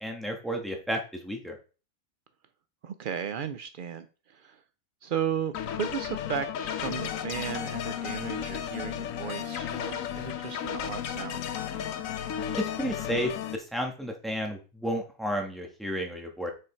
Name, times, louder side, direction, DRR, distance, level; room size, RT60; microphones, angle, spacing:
voice 1, 0.0-1.5 12.8-16.5, equal, ahead, 2 dB, 1.4 m, -32 dB
voice 2, 2.8-4.6 5.0-11.4, right 8 dB, 85° right, 10 dB, 0.4 m, -35 dB
sound 1, 5.5-13.6, left 9 dB, 70° left, 1.0 m, -34 dB
6.1 x 5.0 x 4.5 m, 0.34 s
omnidirectional pair, 1.5 m